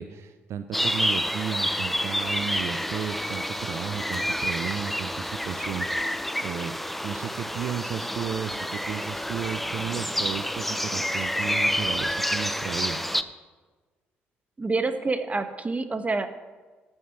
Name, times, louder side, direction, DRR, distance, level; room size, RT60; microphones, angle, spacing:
voice 1, 0.0-13.0, right 9 dB, 60° right, 10 dB, 0.5 m, -34 dB
sound 1, 0.7-13.2, equal, 5° left, 0.7 m, -29 dB
voice 2, 14.6-16.3, right 3 dB, 25° right, 10 dB, 1.1 m, -27 dB
14.0 x 6.2 x 5.9 m, 1.3 s
hypercardioid pair, 50°, 5 cm